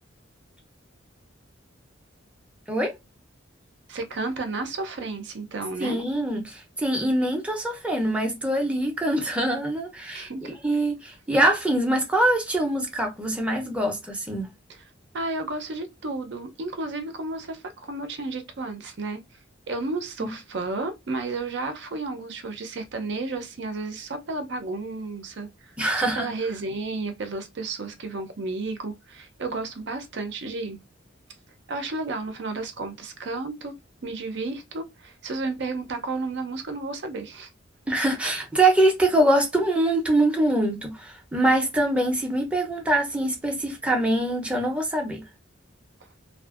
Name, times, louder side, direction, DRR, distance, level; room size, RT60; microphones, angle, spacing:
voice 1, 3.9-6.0 10.1-10.6 14.7-14.8 15.1-19.2 19.7-30.8 31.7-37.5, right 3 dB, 60° right, 0.6 m, -32 dB
voice 2, 5.8-10.3 10.6-14.5 20.2-20.3 25.8-26.3 37.9-45.2, right 1 dB, 5° right, 0.6 m, -24 dB
2.6 x 2.4 x 2.4 m
head